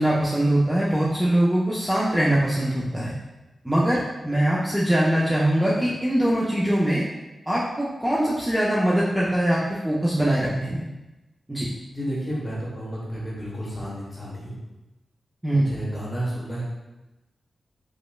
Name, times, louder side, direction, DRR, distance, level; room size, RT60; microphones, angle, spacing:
voice 1, 0.0-3.1 3.6-7.0 7.5-10.8 11.5-11.7 15.4-15.7, right 1 dB, 5° right, -7 dB, 0.4 m, -22 dB
voice 2, 11.9-14.6 15.5-16.6, equal, 25° left, -7 dB, 1.1 m, -31 dB
5.0 x 2.0 x 2.3 m, 1.0 s
wide cardioid pair, 180°, 0 cm